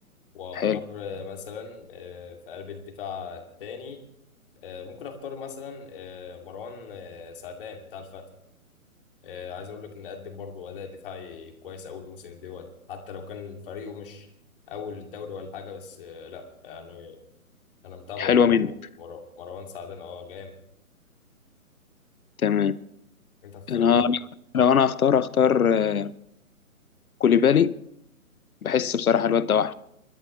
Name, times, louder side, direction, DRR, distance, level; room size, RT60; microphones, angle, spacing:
voice 1, 0.3-4.0 4.6-8.2 9.2-14.3 14.7-17.2 17.8-20.5 23.4-24.0, left 6 dB, 40° left, 2.5 m, -39 dB
voice 2, 18.2-18.7 22.4-22.8 23.7-24.2 24.5-26.1 27.2-27.7 28.6-29.7, left 7 dB, 75° left, 0.8 m, -20 dB
30.0 x 12.5 x 3.2 m
figure-of-eight pair, 140°, 43 cm